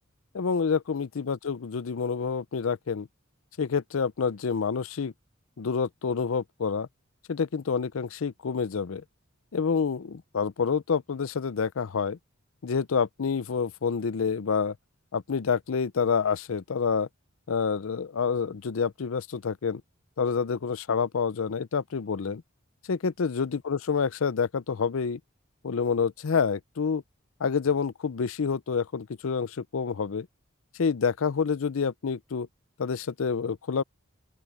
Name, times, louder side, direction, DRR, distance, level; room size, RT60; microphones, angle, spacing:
voice 1, 0.3-3.1 3.6-5.1 5.6-6.9 7.3-9.0 9.5-12.2 12.6-14.8 15.1-17.1 17.5-19.8 20.2-22.4 22.9-25.2 25.6-27.0 27.4-30.3 30.8-32.5 32.8-33.8, left 5 dB, 75° left, 0.5 m, -28 dB
open air
head